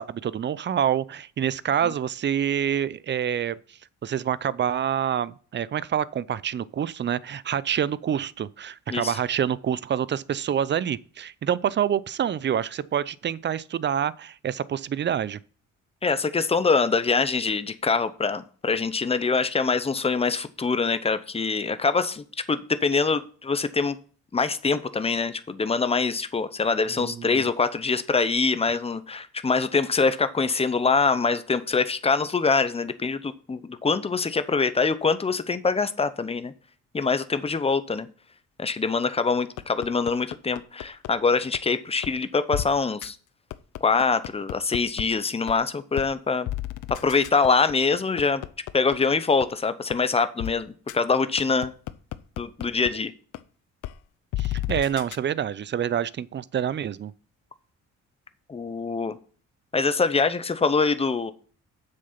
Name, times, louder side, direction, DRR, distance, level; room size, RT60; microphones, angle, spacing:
voice 1, 0.0-3.6 4.0-15.4 26.9-27.4 28.7-28.8 54.4-57.1, right 9 dB, 40° right, 0.5 m, -27 dB
voice 2, 16.0-24.0 24.3-36.5 36.9-38.1 38.6-43.2 43.8-46.5 46.9-48.4 48.7-51.7 52.4-53.1 58.5-59.2 59.7-61.3, left 4 dB, 20° left, 0.8 m, -24 dB
sound 1, 39.6-41.1 41.5-41.6 42.0-42.1 42.5-42.6 43.0-43.1 43.5-45.0 45.5-45.6 46.0-46.1 46.5-48.9 49.4-49.5 49.9-50.0 50.4-50.5 50.9-51.0 51.4-52.9 53.3-53.4 53.8-53.9 54.3-55.2, left 15 dB, 85° left, 0.6 m, -31 dB
7.6 x 6.6 x 5.9 m
cardioid pair, 90°, 30 cm